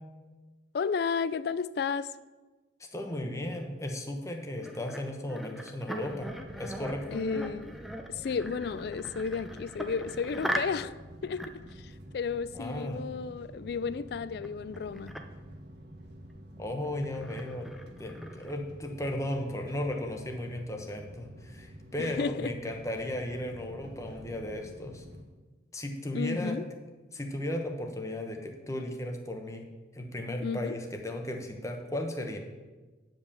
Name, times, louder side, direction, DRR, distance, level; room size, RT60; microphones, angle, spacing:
voice 1, 0.7-2.2 7.1-7.8 8.1-11.0 11.2-15.2 22.0-22.5 26.1-26.7 30.4-30.8, left 5 dB, 60° left, 0.3 m, -33 dB
voice 2, 2.9-6.3 6.6-7.2 12.5-13.0 16.6-17.7 18.0-25.1 25.7-26.6 27.1-29.7 29.9-32.4, left 1 dB, 15° left, 1.0 m, -35 dB
sound 1, 4.2-10.9 11.2-11.7 14.4-14.5 14.7-15.2 16.3-16.4 16.8-18.6, equal, ahead, 0.6 m, -40 dB
sound 2, 6.0-25.2, equal, 60° right, 1.3 m, -49 dB
9.2 x 5.3 x 7.0 m
head